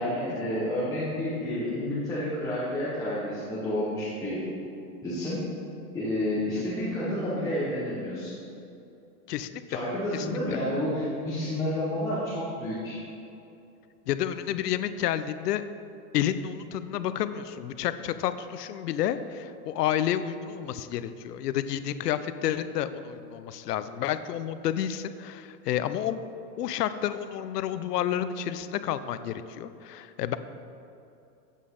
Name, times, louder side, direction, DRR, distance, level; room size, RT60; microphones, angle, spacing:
voice 1, 0.0-4.5 5.0-5.5 5.9-8.3 9.7-13.0, left 1 dB, 5° left, -10 dB, 1.1 m, -30 dB
voice 2, 9.3-9.6 10.1-10.3 14.1-15.6 16.1-26.2 26.6-30.4, left 10 dB, 90° left, 12 dB, 0.6 m, -30 dB
8.4 x 8.2 x 3.7 m, 2.7 s
supercardioid pair, 165°, 46 cm